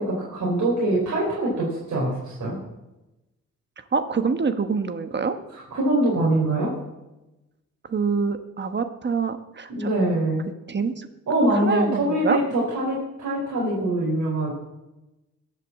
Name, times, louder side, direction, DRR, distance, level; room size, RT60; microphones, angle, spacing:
voice 1, 0.0-2.6 5.7-6.7 9.7-10.5 11.3-14.5, right 1 dB, 70° right, -5 dB, 4.6 m, -23 dB
voice 2, 3.9-5.4 7.9-9.9 10.7-11.1 11.5-12.4, right 5 dB, 35° right, 9 dB, 1.1 m, -25 dB
21.0 x 8.0 x 7.5 m, 1.0 s
wide cardioid pair, 140°, 29 cm